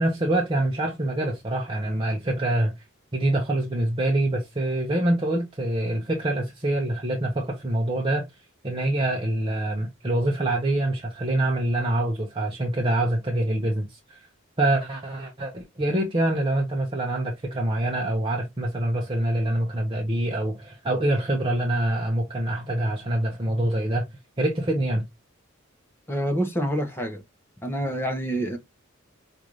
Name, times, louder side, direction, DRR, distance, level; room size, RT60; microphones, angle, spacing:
voice 1, 0.0-2.7 3.1-8.3 8.6-14.3 14.6-24.1 24.4-25.0, right 1 dB, 25° right, 0.7 m, -25 dB
voice 2, 26.1-27.2 27.6-28.6, equal, 10° left, 0.9 m, -27 dB
5.2 x 2.6 x 3.0 m
head